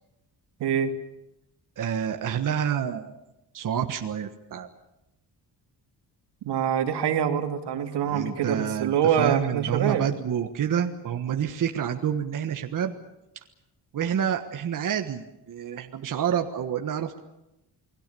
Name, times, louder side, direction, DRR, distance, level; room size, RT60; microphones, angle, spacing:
voice 1, 0.6-0.9 6.4-10.0, right 8 dB, 80° right, 6 dB, 2.7 m, -25 dB
voice 2, 1.8-3.2 3.5-4.7 8.0-12.9 13.9-17.2, right 8 dB, 50° right, 5 dB, 1.5 m, -28 dB
29.0 x 21.0 x 7.0 m, 0.90 s
cardioid pair, 145°, 40 cm